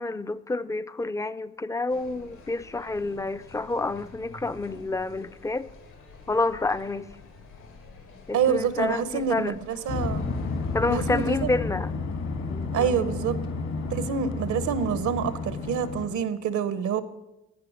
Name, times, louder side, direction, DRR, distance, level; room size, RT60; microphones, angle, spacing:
voice 1, 0.0-5.7 6.3-7.1 8.3-9.6 10.7-11.9 12.5-13.2, left 3 dB, 10° left, 0.4 m, -29 dB
sound 1, 1.9-11.4, left 4 dB, 85° left, 3.0 m, -49 dB
voice 2, 8.3-10.3 10.9-11.5 12.7-13.4 13.9-17.0, right 7 dB, 75° right, 0.9 m, -27 dB
sound 2, 9.9-16.1, left 3 dB, 60° left, 1.8 m, -31 dB
15.0 x 5.8 x 6.4 m
cardioid pair, 90°, 30 cm